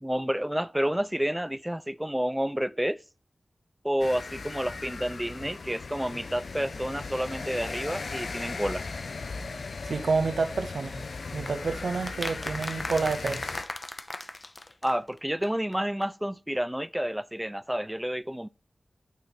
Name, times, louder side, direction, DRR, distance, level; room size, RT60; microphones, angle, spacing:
voice 1, 0.0-3.0 3.8-8.8 14.8-18.5, equal, 10° right, 0.4 m, -30 dB
sound 1, 4.0-13.6, left 4 dB, 85° left, 0.5 m, -38 dB
voice 2, 9.8-11.0 11.3-13.6, right 4 dB, 90° right, 0.6 m, -29 dB
sound 2, 11.5-15.2 15.4-15.5 15.7-15.8 16.0-16.1, left 2 dB, 40° left, 0.6 m, -37 dB
9.2 x 3.5 x 4.0 m
cardioid pair, 45°, 0 cm